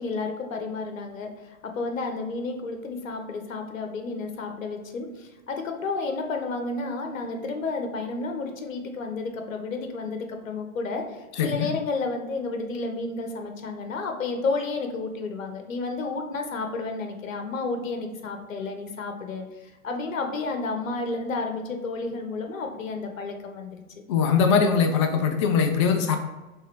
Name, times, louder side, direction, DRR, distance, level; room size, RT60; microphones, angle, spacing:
voice 1, 0.0-23.8, left 3 dB, 70° left, 4 dB, 0.9 m, -31 dB
voice 2, 11.4-11.7 24.1-26.2, left 6 dB, 25° left, 5 dB, 0.4 m, -21 dB
4.8 x 3.4 x 3.3 m, 1.1 s
figure-of-eight pair, 105°, 41 cm